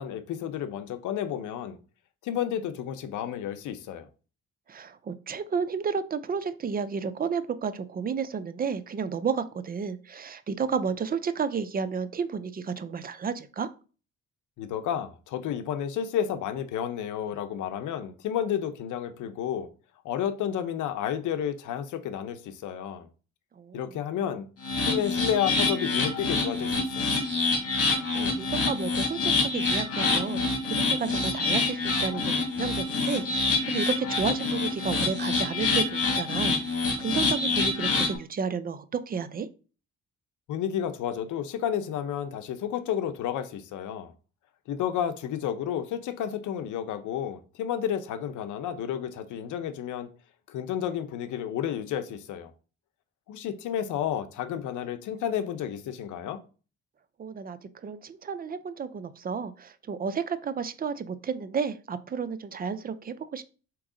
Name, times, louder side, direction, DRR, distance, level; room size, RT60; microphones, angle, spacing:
voice 1, 0.0-1.8 2.2-4.1 14.6-19.7 20.0-23.1 23.7-24.5 24.8-27.1 40.5-44.1 44.7-50.1 50.5-52.5 53.3-56.4, left 9 dB, 80° left, 0.7 m, -31 dB
voice 2, 4.7-13.7 23.6-24.0 27.9-39.5 57.2-63.4, right 6 dB, 30° right, 0.5 m, -32 dB
sound 1, 24.6-38.2, left 3 dB, 50° left, 1.6 m, -26 dB
3.6 x 3.0 x 4.9 m
cardioid pair, 90°, 30 cm